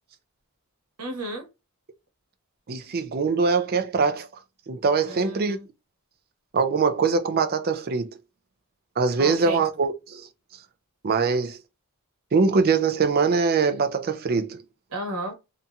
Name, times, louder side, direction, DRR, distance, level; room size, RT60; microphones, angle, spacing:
voice 1, 1.0-1.4 5.1-5.7 9.2-9.6 14.9-15.4, right 1 dB, 85° right, 1.1 m, -33 dB
voice 2, 2.7-4.3 4.7-5.6 6.5-8.1 9.0-10.2 11.0-11.6 12.3-14.6, right 4 dB, 45° right, 0.4 m, -23 dB
2.7 x 2.6 x 2.2 m
head